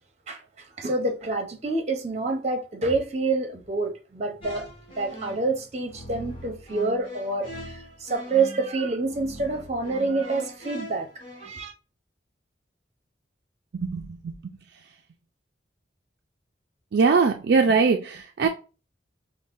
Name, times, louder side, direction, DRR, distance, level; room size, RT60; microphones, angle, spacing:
voice 1, 0.3-4.7 5.0-11.1 11.4-11.7, right 3 dB, 40° right, 0.8 m, -27 dB
sound 1, 4.4-11.5, equal, 30° left, 1.3 m, -41 dB
voice 2, 13.7-14.3 16.9-18.5, right 4 dB, 60° right, 0.4 m, -21 dB
5.4 x 2.1 x 2.5 m
head